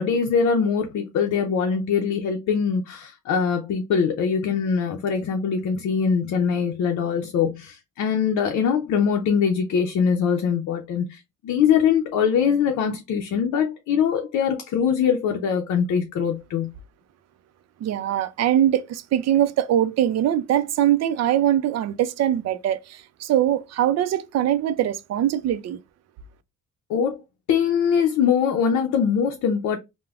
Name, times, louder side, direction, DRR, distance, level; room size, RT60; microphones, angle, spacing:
voice 1, 0.0-16.7 26.9-27.2 27.5-29.8, left 7 dB, 70° left, 0.6 m, -22 dB
voice 2, 17.8-25.8, right 11 dB, 60° right, 0.4 m, -22 dB
3.3 x 2.1 x 2.3 m
cardioid pair, 90°, 30 cm